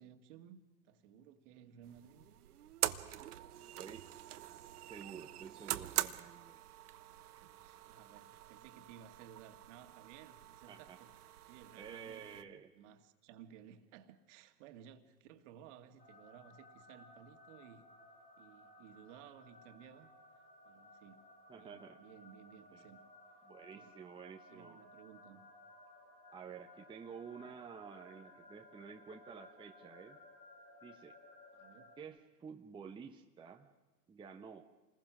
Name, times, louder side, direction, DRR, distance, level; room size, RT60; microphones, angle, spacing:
voice 1, 0.0-2.3 7.1-11.1 11.5-17.9 18.4-20.1 20.6-21.2 21.5-23.0 23.7-23.9 24.5-25.4 31.5-31.9, right 9 dB, 45° right, 2.1 m, -57 dB
sound 1, 1.8-12.4, right 13 dB, 65° right, 1.2 m, -44 dB
voice 2, 3.8-4.1 4.8-6.6 10.7-11.0 11.8-12.7 21.5-22.0 22.7-22.9 23.4-24.8 26.3-30.2 30.8-31.1 32.0-33.7 34.1-34.7, right 6 dB, 10° right, 0.9 m, -51 dB
sound 2, 16.0-32.0, left 2 dB, 85° left, 4.1 m, -59 dB
28.0 x 20.5 x 6.2 m
hypercardioid pair, 115°, 49 cm